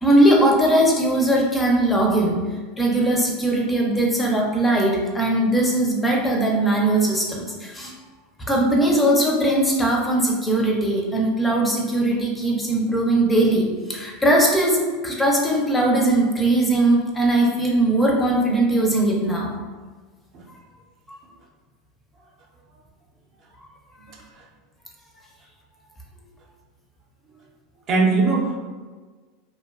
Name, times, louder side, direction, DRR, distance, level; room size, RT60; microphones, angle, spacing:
voice 1, 0.0-2.4 2.8-7.9 8.5-19.5 21.1-21.2, right 1 dB, 15° left, -2 dB, 0.5 m, -20 dB
voice 2, 27.9-28.6, right 3 dB, 45° right, -1 dB, 0.5 m, -21 dB
2.5 x 2.2 x 2.3 m, 1.4 s
hypercardioid pair, 105°, 0 cm